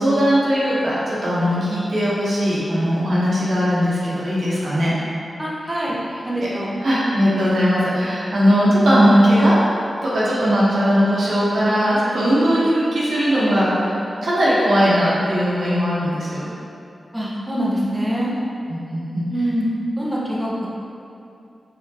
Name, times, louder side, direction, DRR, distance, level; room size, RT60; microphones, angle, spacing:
voice 1, 0.0-4.9 5.6-5.8 6.1-6.5 6.8-9.6 10.0-16.5 18.7-19.2, equal, 75° right, -8 dB, 1.1 m, -19 dB
voice 2, 5.4-6.0 6.2-6.8 17.1-18.3 19.3-19.7 20.0-20.5, equal, 10° right, -6 dB, 1.0 m, -24 dB
4.4 x 3.6 x 2.8 m, 2.7 s
cardioid pair, 45°, 0 cm